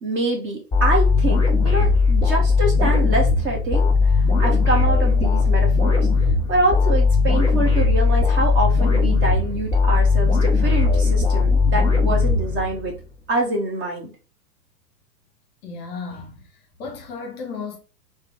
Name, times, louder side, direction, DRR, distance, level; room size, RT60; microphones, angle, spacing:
voice 1, 0.0-6.1 6.5-12.9 13.3-14.1, right 2 dB, 25° right, 0.9 m, -25 dB
sound 1, 0.7-13.0, left 4 dB, 5° left, 1.6 m, -18 dB
voice 2, 15.6-17.8, left 4 dB, 40° left, 0.8 m, -34 dB
3.3 x 2.2 x 3.4 m
figure-of-eight pair, 105°, 49 cm